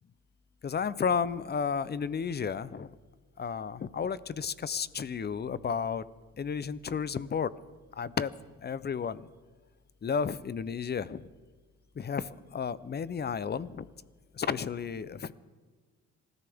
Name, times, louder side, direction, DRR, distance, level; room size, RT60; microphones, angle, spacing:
voice 1, 0.6-2.9 3.4-6.0 6.4-7.5 8.0-8.3 8.6-9.3 10.0-11.2 12.0-13.9 14.4-15.3, left 6 dB, 35° left, 17 dB, 0.6 m, -32 dB
26.5 x 13.5 x 3.6 m, 1.5 s
cardioid pair, 90°, 30 cm